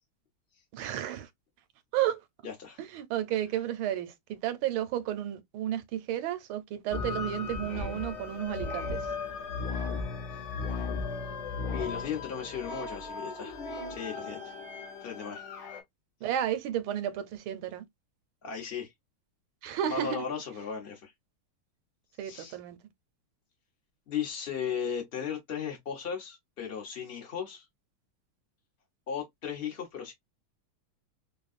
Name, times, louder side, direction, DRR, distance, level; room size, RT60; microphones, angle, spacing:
voice 1, 0.7-1.3 1.9-2.2 2.8-9.1 16.2-17.8 19.6-20.2 22.2-22.8, right 11 dB, 75° right, 1.4 m, -32 dB
voice 2, 2.4-2.8 11.7-13.6 13.9-14.6 15.0-15.4 18.4-18.9 19.8-21.1 22.2-22.6 24.1-27.6 29.1-30.1, left 7 dB, 50° left, 0.7 m, -36 dB
sound 1, 6.9-15.8, left 4 dB, 75° left, 2.0 m, -36 dB
5.1 x 2.3 x 2.4 m
omnidirectional pair, 2.3 m